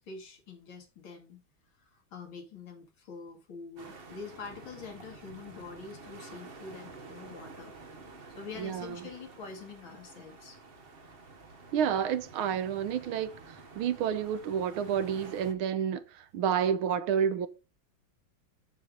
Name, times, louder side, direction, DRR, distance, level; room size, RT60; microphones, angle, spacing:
voice 1, 0.0-1.4 1.9-7.7 8.1-10.6, left 5 dB, 70° left, 2.8 m, -45 dB
sound 1, 3.8-15.5, right 3 dB, 35° right, 1.1 m, -50 dB
voice 2, 8.6-9.0 11.7-17.5, right 8 dB, 85° right, 1.7 m, -30 dB
7.7 x 7.3 x 3.7 m
omnidirectional pair, 2.2 m